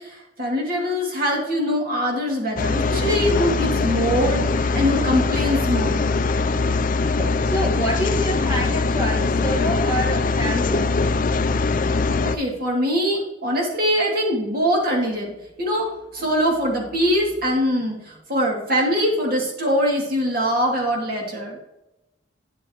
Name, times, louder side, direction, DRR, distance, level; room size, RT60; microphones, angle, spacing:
voice 1, 0.0-6.1 12.2-15.3 15.6-21.6, equal, 55° right, -1 dB, 2.5 m, -23 dB
sound 1, 2.6-12.4, left 3 dB, 45° left, 0.5 m, -22 dB
voice 2, 7.2-10.9, equal, 20° right, -6 dB, 1.8 m, -27 dB
10.5 x 7.2 x 3.0 m, 0.91 s
head